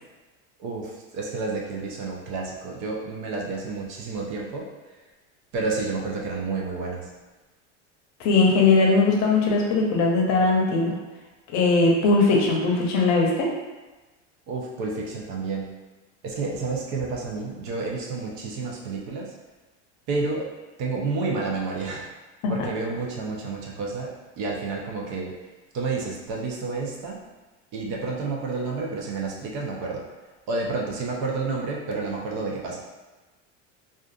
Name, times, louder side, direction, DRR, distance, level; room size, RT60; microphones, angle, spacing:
voice 1, 0.6-4.7 5.5-7.1 14.5-15.7 16.2-19.3 20.1-20.5 20.8-22.1 22.5-25.3 25.7-27.2 27.7-30.0 30.5-32.8, right 3 dB, 50° right, -2 dB, 0.7 m, -30 dB
voice 2, 8.2-10.9 11.5-13.5 22.4-22.5, left 3 dB, 50° left, -1 dB, 0.7 m, -20 dB
2.5 x 2.4 x 2.4 m, 1.2 s
supercardioid pair, 115°, 36 cm